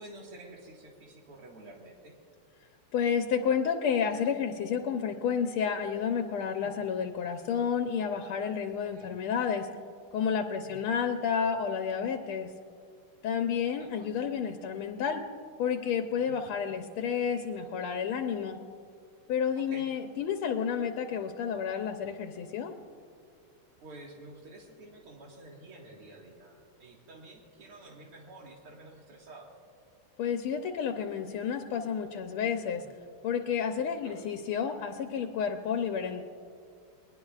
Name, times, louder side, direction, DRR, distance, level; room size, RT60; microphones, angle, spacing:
voice 1, 0.0-2.2 6.6-6.7 8.9-9.1 10.6-10.8 13.8-14.1 16.2-16.4 19.5-19.9 23.8-29.5 32.7-32.8 34.0-34.2, right 2 dB, 85° right, -2 dB, 2.8 m, -50 dB
voice 2, 2.9-9.7 10.1-12.5 13.2-15.2 15.6-18.6 19.3-22.7 30.2-32.8 33.2-36.2, left 7 dB, 80° left, 4 dB, 1.7 m, -30 dB
29.5 x 20.5 x 2.4 m, 2.3 s
omnidirectional pair, 2.4 m